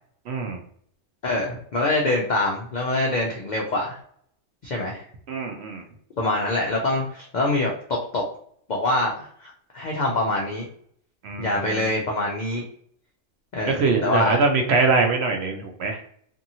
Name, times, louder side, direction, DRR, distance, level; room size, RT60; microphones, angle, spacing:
voice 1, 0.3-0.6 5.3-5.8 11.2-12.0 13.7-16.0, right 4 dB, 65° right, 3 dB, 0.7 m, -23 dB
voice 2, 1.2-4.0 4.6-5.0 6.2-8.2 8.7-10.7 11.4-12.6 13.5-14.4, left 2 dB, 65° left, -1 dB, 0.4 m, -25 dB
2.8 x 2.6 x 2.6 m, 0.62 s
omnidirectional pair, 1.3 m